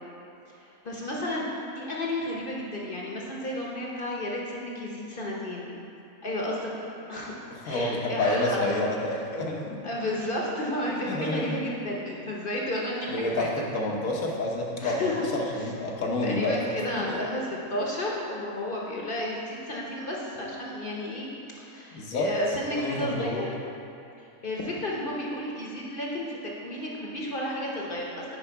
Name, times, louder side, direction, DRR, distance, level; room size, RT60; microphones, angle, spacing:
voice 1, 0.6-5.8 6.2-8.8 9.8-13.5 14.8-15.2 16.2-17.4 17.7-21.3 21.6-23.5 24.4-28.2, left 1 dB, 45° left, -3 dB, 1.0 m, -32 dB
voice 2, 7.7-9.8 11.1-11.6 13.1-16.7 17.1-17.2 21.9-22.3 22.8-23.4, left 2 dB, 85° left, -1 dB, 1.4 m, -29 dB
10.0 x 4.6 x 4.6 m, 2.6 s
omnidirectional pair, 1.4 m